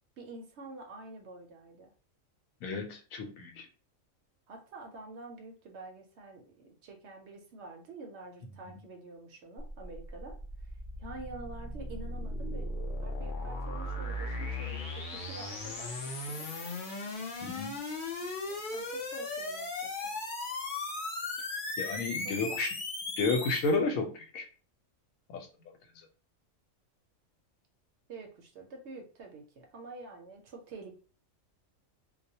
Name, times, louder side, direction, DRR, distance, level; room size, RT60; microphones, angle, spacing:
voice 1, 0.2-1.9 4.5-10.4 11.0-12.7 13.0-16.5 18.5-20.2 22.2-22.6 28.1-30.9, right 3 dB, 65° right, 2 dB, 0.8 m, -47 dB
voice 2, 2.6-3.7 17.4-17.8 21.8-22.7 23.2-24.5 25.3-25.5, left 3 dB, 80° left, 4 dB, 1.0 m, -32 dB
sound 1, 9.6-23.7, left 2 dB, 55° left, 0.6 m, -37 dB
2.3 x 2.1 x 2.7 m, 0.38 s
omnidirectional pair, 1.4 m